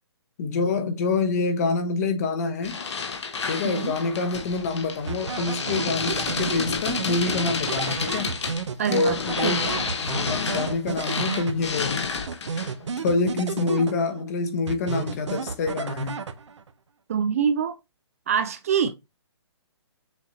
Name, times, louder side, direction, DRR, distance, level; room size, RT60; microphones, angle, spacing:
voice 1, 0.4-2.8 3.5-8.4 8.9-9.7 10.0-12.1 12.5-16.2, left 3 dB, 35° left, 0.8 m, -26 dB
sound 1, 2.6-12.8, left 5 dB, 75° left, 1.0 m, -30 dB
voice 2, 3.6-4.0 8.8-9.8 17.1-17.8 18.3-18.9, right 7 dB, 30° right, 0.3 m, -25 dB
sound 2, 5.1-11.9 12.3-14.3 14.7-16.7, right 5 dB, 85° right, 0.7 m, -32 dB
6.3 x 2.7 x 3.0 m
hypercardioid pair, 155°, 15 cm